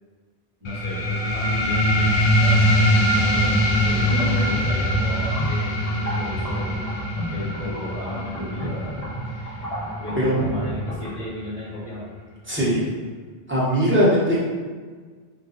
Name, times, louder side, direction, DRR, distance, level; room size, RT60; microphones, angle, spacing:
sound 1, 0.6-11.7, equal, 60° left, 0.8 m, -23 dB
voice 1, 0.6-5.7 6.2-6.8 7.3-9.1 10.0-12.1, left 2 dB, 35° right, -11 dB, 1.3 m, -34 dB
sound 2, 4.0-11.2, right 1 dB, 40° left, 1.0 m, -32 dB
voice 2, 12.5-12.8 13.5-14.4, equal, 10° right, -8 dB, 1.1 m, -19 dB
5.1 x 2.3 x 3.9 m, 1.5 s
omnidirectional pair, 1.1 m